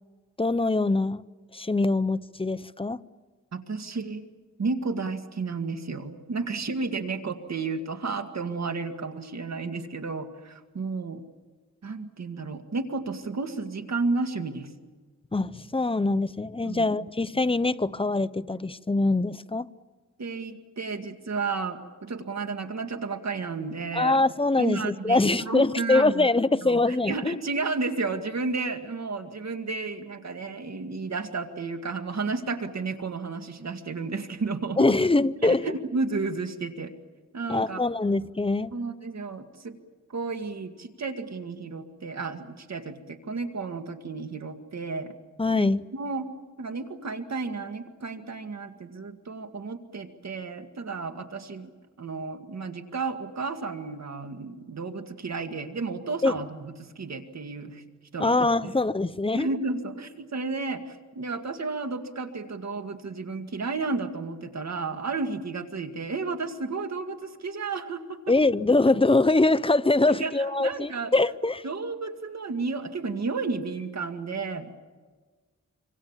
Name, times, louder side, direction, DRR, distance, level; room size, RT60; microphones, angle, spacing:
voice 1, 0.4-1.2 1.5-3.0 15.3-19.7 23.9-27.4 34.8-35.6 37.5-38.7 45.4-45.8 56.2-56.3 58.2-59.5 68.3-71.6, left 2 dB, 20° left, 14 dB, 0.7 m, -23 dB
voice 2, 3.5-4.3 4.6-11.2 11.8-14.7 16.6-16.9 20.2-24.2 24.6-26.3 26.6-34.9 35.4-36.9 37.3-37.8 38.7-39.8 40.1-45.1 45.5-45.7 45.9-46.3 46.6-51.7 52.0-57.8 58.1-58.7 59.3-68.3 70.1-71.1 71.6-74.7, right 4 dB, 65° right, 6 dB, 2.1 m, -32 dB
26.0 x 25.5 x 7.3 m, 1.4 s
wide cardioid pair, 85°, 29 cm